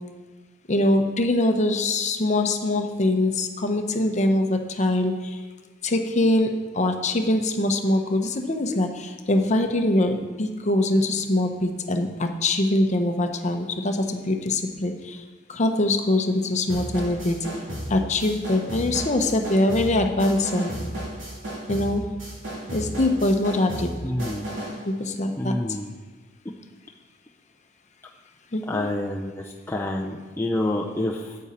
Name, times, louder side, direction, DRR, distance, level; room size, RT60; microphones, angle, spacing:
voice 1, 0.7-5.4 5.8-6.5 6.7-15.2 15.5-17.4 17.9-20.7 21.7-22.0 22.7-23.9 24.8-25.5 28.5-28.9, left 1 dB, 40° left, 5 dB, 0.8 m, -23 dB
sound 1, 16.7-24.8, equal, 75° right, 3.4 m, -34 dB
voice 2, 24.0-24.4 25.4-25.9 28.7-31.4, left 1 dB, 15° left, -1 dB, 0.5 m, -28 dB
8.9 x 8.5 x 4.3 m, 1.3 s
head